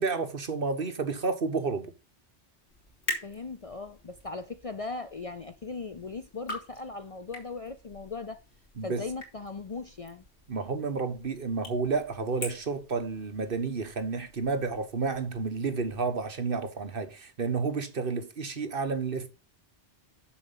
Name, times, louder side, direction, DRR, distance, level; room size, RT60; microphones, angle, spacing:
voice 1, 0.0-1.9 8.8-9.1 10.5-19.3, right 4 dB, 55° right, 1.4 m, -31 dB
sound 1, 2.7-16.0, left 1 dB, 80° left, 3.3 m, -45 dB
voice 2, 3.2-8.4 8.8-10.2, left 3 dB, 40° left, 0.6 m, -38 dB
7.2 x 6.8 x 5.6 m
omnidirectional pair, 1.1 m